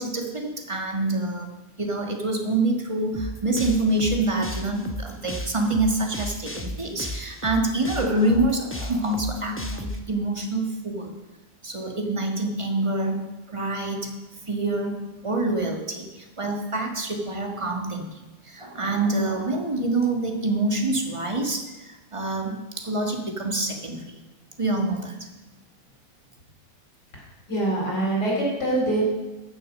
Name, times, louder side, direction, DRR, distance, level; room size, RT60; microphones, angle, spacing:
voice 1, 0.0-1.5 1.8-11.1 11.6-14.1 14.5-15.0 15.2-18.1 18.4-24.0 24.6-25.2, right 2 dB, 20° right, 3 dB, 1.4 m, -26 dB
sound 1, 3.1-10.0, left 1 dB, 15° left, 0.5 m, -34 dB
voice 2, 27.5-29.0, right 1 dB, 70° left, -3 dB, 5.0 m, -24 dB
14.5 x 6.7 x 6.3 m, 1.2 s
omnidirectional pair, 1.9 m